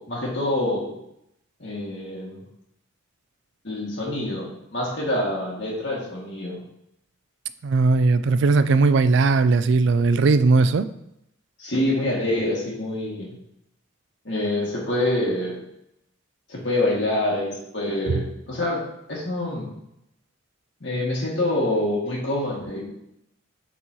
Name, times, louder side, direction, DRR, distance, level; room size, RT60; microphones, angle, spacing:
voice 1, 0.1-0.9 1.6-2.4 3.6-6.6 11.6-13.3 14.2-15.6 16.5-18.8 19.1-19.7 20.8-22.8, left 1 dB, 60° left, -4 dB, 2.1 m, -26 dB
voice 2, 7.6-10.9 18.1-18.2, right 3 dB, 60° right, 13 dB, 0.3 m, -18 dB
8.1 x 4.2 x 3.0 m, 0.80 s
head